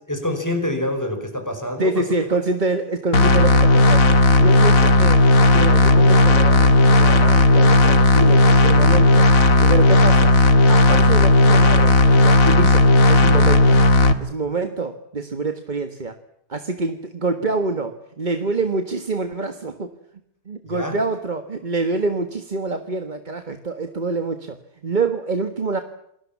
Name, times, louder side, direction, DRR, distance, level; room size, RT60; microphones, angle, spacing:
voice 1, 0.1-2.0 20.6-21.0, left 1 dB, 10° left, 6 dB, 5.5 m, -26 dB
voice 2, 1.8-9.3 9.6-10.4 10.7-13.8 14.2-16.2 16.5-19.9 20.4-25.8, right 3 dB, 30° right, 8 dB, 1.5 m, -26 dB
sound 1, 3.1-14.1, left 2 dB, 55° left, 2.1 m, -14 dB
28.0 x 20.0 x 7.3 m, 0.75 s
omnidirectional pair, 1.7 m